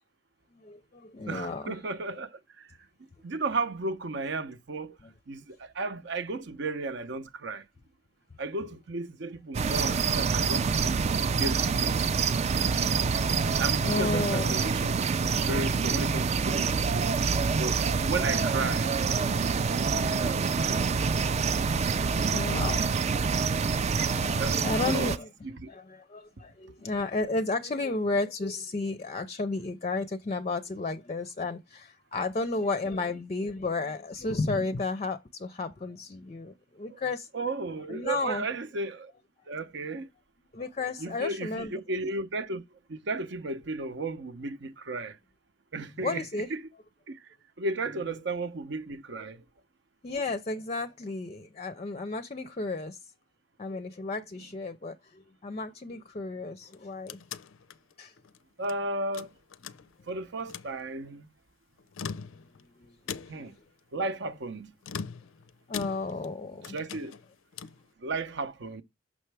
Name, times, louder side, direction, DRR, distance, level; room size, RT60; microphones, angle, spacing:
voice 1, 0.5-1.8 9.7-9.9 13.3-14.6 19.2-19.3 22.3-23.0 24.0-25.3 25.7-37.3 37.9-38.5 40.5-41.7 46.0-46.5 50.0-53.0 53.6-57.2 58.0-58.1 62.8-63.5 65.7-66.8, left 3 dB, 35° left, 0.5 m, -33 dB
voice 2, 1.3-2.7 3.2-5.0 5.3-7.7 8.4-11.0 11.4-12.1 13.6-15.0 15.3-17.1 17.5-18.9 20.0-20.5 22.1-22.6 24.4-25.1 25.4-25.7 36.9-37.0 37.3-39.1 39.5-40.1 41.0-42.6 42.9-45.2 45.7-46.7 47.1-49.4 58.6-59.3 60.1-61.3 63.3-63.6 63.9-64.7 66.7-67.1 68.0-68.8, right 3 dB, 60° right, 0.7 m, -34 dB
sound 1, 9.5-25.2, right 5 dB, 35° right, 0.3 m, -26 dB
sound 2, 56.6-58.8 59.1-60.1 60.4-60.8 61.8-62.6 63.1-63.6 64.8-66.4 66.6-67.9, left 6 dB, 85° left, 0.5 m, -41 dB
6.3 x 5.6 x 3.3 m
head